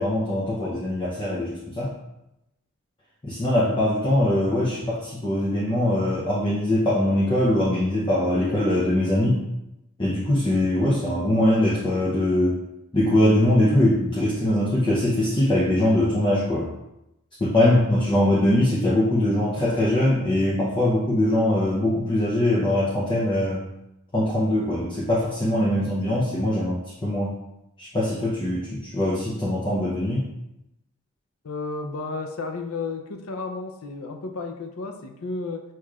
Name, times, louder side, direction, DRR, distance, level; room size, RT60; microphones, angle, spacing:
voice 1, 0.0-1.9 3.2-9.4 10.0-12.6 12.9-16.7 17.4-23.7 24.1-27.4 27.8-30.3, left 1 dB, 20° left, -6 dB, 0.6 m, -22 dB
voice 2, 25.6-26.2 31.4-35.6, left 3 dB, 70° left, 5 dB, 0.5 m, -33 dB
6.5 x 3.0 x 2.4 m, 0.90 s
head